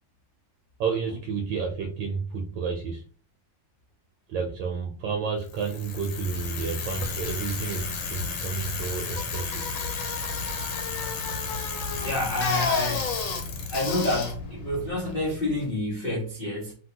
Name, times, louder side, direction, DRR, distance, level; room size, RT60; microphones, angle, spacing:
voice 1, 0.8-3.0 4.3-9.6, right 5 dB, 75° right, 1.2 m, -31 dB
Bicycle, 5.5-15.6, left 5 dB, 70° left, 1.3 m, -31 dB
voice 2, 12.0-13.2 13.7-16.7, left 1 dB, 90° left, 0.4 m, -28 dB
2.8 x 2.8 x 2.7 m
omnidirectional pair, 2.2 m